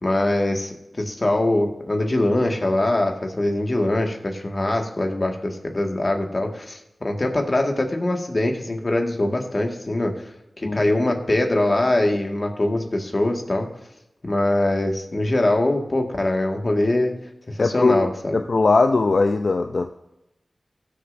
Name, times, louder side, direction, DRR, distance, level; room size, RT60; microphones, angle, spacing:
voice 1, 0.0-10.1 10.6-13.7 14.2-17.1 17.5-18.4, left 1 dB, 45° left, 2 dB, 1.7 m, -22 dB
voice 2, 17.6-19.9, left 3 dB, 70° left, 6 dB, 0.4 m, -20 dB
20.0 x 6.8 x 2.6 m, 0.89 s
wide cardioid pair, 60°, 0 cm